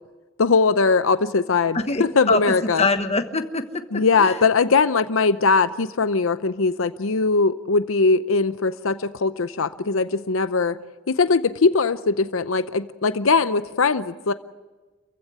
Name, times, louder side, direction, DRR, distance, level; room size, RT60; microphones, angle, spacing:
voice 1, 0.4-2.9 3.9-10.8 11.1-14.3, left 4 dB, 80° left, 12 dB, 0.7 m, -20 dB
voice 2, 1.7-2.4 2.8-3.7 3.9-4.4, left 3 dB, 30° left, 8 dB, 1.2 m, -23 dB
28.0 x 15.5 x 8.1 m, 1.3 s
head